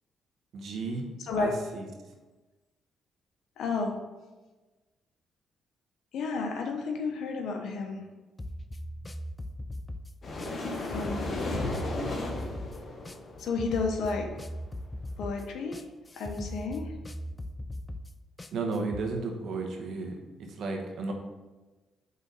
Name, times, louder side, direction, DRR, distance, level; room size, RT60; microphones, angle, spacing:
voice 1, 0.5-1.9 18.5-21.1, right 3 dB, 70° right, 2 dB, 1.1 m, -34 dB
voice 2, 3.6-4.0 6.1-8.0 10.9-11.2 13.4-14.3 15.2-15.8 16.2-16.9, left 4 dB, 75° left, 3 dB, 1.0 m, -31 dB
sound 1, 8.4-19.0, left 1 dB, 20° left, 0.4 m, -39 dB
sound 2, 10.2-14.6, left 2 dB, 45° left, 1.1 m, -35 dB
5.4 x 4.0 x 5.4 m, 1.2 s
cardioid pair, 90°, 0 cm